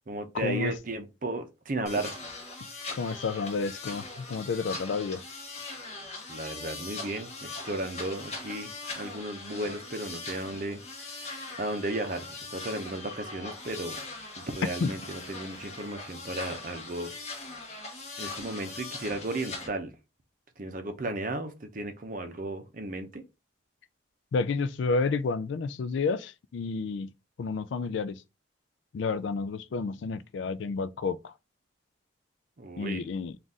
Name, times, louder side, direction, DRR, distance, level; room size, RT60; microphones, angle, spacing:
voice 1, 0.1-2.2 6.3-11.3 11.6-14.0 14.4-17.4 18.2-19.9 20.6-23.2 32.6-33.1, right 2 dB, 45° right, 0.6 m, -35 dB
sound 1, 1.9-19.7, left 3 dB, 35° left, 1.0 m, -41 dB
voice 2, 2.9-5.2 14.8-14.9 24.3-27.1 27.4-28.2 28.9-31.3 32.8-33.3, left 4 dB, 75° left, 0.3 m, -30 dB
4.0 x 2.5 x 3.5 m
head